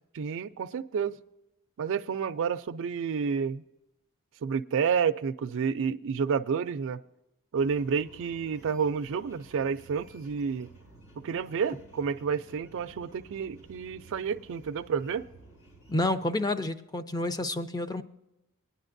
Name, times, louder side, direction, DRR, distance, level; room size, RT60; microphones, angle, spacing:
voice 1, 0.1-1.2 1.8-3.6 4.4-7.0 7.5-10.7 11.2-15.2, right 6 dB, 60° right, 0.4 m, -30 dB
sound 1, 7.5-16.1, right 2 dB, 80° left, 3.7 m, -54 dB
voice 2, 15.9-18.0, left 2 dB, 20° left, 0.5 m, -29 dB
20.5 x 9.8 x 2.6 m
head